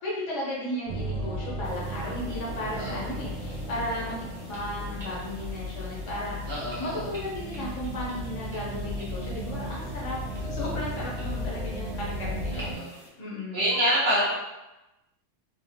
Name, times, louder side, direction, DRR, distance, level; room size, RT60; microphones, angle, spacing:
voice 1, 0.0-4.2 4.5-6.5 6.8-12.8 13.2-13.7, left 1 dB, 70° left, -5 dB, 1.3 m, -35 dB
sound 1, 0.8-12.7, equal, 70° right, 1.4 m, -35 dB
sound 2, 1.6-13.1, right 1 dB, 15° right, 0.9 m, -50 dB
voice 2, 6.5-7.1 12.5-12.9 13.5-14.3, equal, 55° right, -7 dB, 1.2 m, -26 dB
3.4 x 2.5 x 2.7 m, 0.98 s
omnidirectional pair, 1.3 m